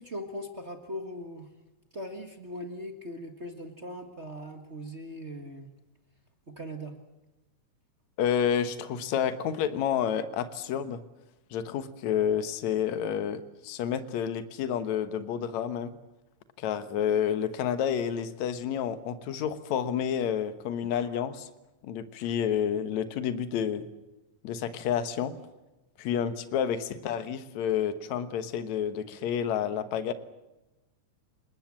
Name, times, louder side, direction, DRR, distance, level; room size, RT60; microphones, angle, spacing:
voice 1, 0.0-1.5 1.9-5.7 6.6-6.9, equal, 35° right, 4 dB, 1.2 m, -39 dB
voice 2, 8.2-11.0 11.5-16.0 16.6-21.5 21.8-23.9 24.4-25.3 26.0-30.1, left 8 dB, 65° left, 11 dB, 2.4 m, -29 dB
29.0 x 19.5 x 7.5 m, 1.0 s
omnidirectional pair, 3.8 m